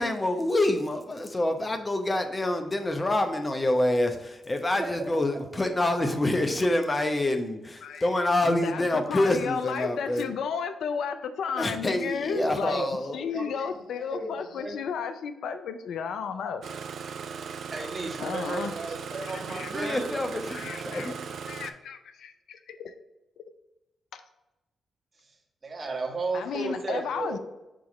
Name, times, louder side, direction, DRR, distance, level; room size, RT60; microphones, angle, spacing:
voice 1, 0.0-10.3 11.6-13.3 19.7-21.3, left 1 dB, 30° left, 6 dB, 0.8 m, -27 dB
voice 2, 4.7-5.1 6.1-6.2 12.3-13.5 14.1-14.3 14.6-14.8 17.3-20.0 25.6-27.4, right 3 dB, 45° right, 0 dB, 1.5 m, -34 dB
voice 3, 7.8-12.9 13.1-16.6 18.2-18.8 19.2-20.0 20.5-21.1 21.5-22.9 23.4-23.5 24.1-24.2 26.3-27.4, left 6 dB, 70° left, 9 dB, 0.4 m, -33 dB
Engine starting, 16.6-21.7, right 6 dB, 65° right, 0.4 m, -38 dB
6.2 x 2.9 x 5.2 m, 1.0 s
hypercardioid pair, 40°, 0 cm